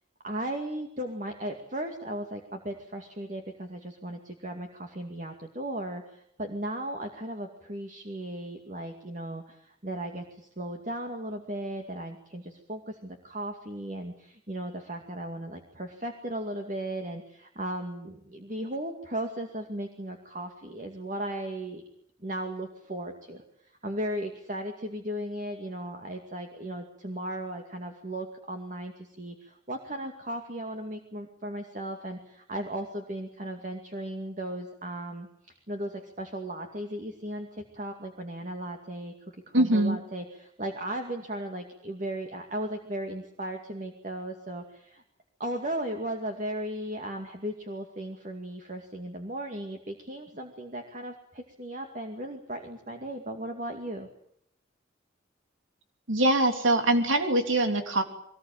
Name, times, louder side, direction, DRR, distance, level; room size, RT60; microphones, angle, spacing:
voice 1, 0.2-21.8 22.2-23.4 23.8-39.1 39.5-45.0 45.4-54.1, right 1 dB, 40° right, 4 dB, 2.3 m, -36 dB
voice 2, 39.5-40.0 56.1-58.0, right 1 dB, 90° right, 6 dB, 3.3 m, -23 dB
23.0 x 19.5 x 9.0 m, 0.73 s
head